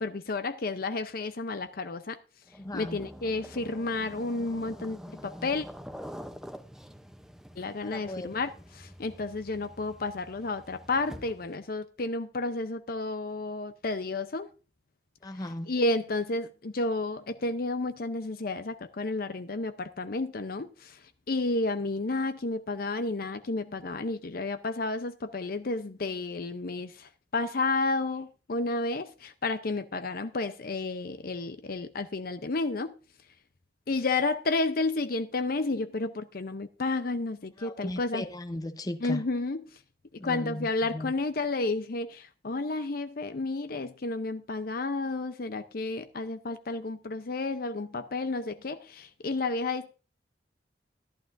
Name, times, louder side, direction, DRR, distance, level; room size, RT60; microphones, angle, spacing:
voice 1, 0.0-2.2 2.7-5.7 7.6-14.5 15.7-32.9 33.9-38.3 39.0-39.8 40.1-49.9, left 3 dB, 55° left, 0.7 m, -31 dB
sound 1, 2.5-11.6, equal, 5° right, 0.6 m, -46 dB
voice 2, 2.6-3.0 7.8-8.3 15.2-15.7 37.6-39.2 40.2-41.1, left 1 dB, 20° left, 0.8 m, -37 dB
14.5 x 11.5 x 2.6 m
head